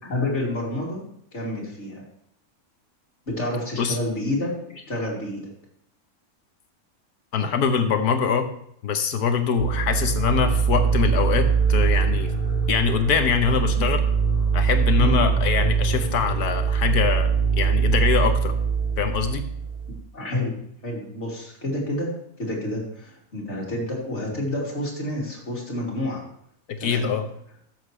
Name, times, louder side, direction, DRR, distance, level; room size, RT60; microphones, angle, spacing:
voice 1, 0.0-1.0 1.3-2.0 3.3-5.5 15.0-15.2 20.1-20.6 20.8-22.1 22.4-26.2 26.8-27.1, left 1 dB, 45° left, -3 dB, 3.0 m, -29 dB
voice 2, 7.3-8.5 8.8-12.3 12.7-14.0 14.5-18.5 19.0-19.4 26.7-27.3, left 6 dB, 85° left, 7 dB, 1.5 m, -23 dB
sound 1, 9.6-20.0, right 6 dB, 35° right, 2.1 m, -22 dB
13.0 x 7.3 x 3.2 m, 0.71 s
omnidirectional pair, 1.6 m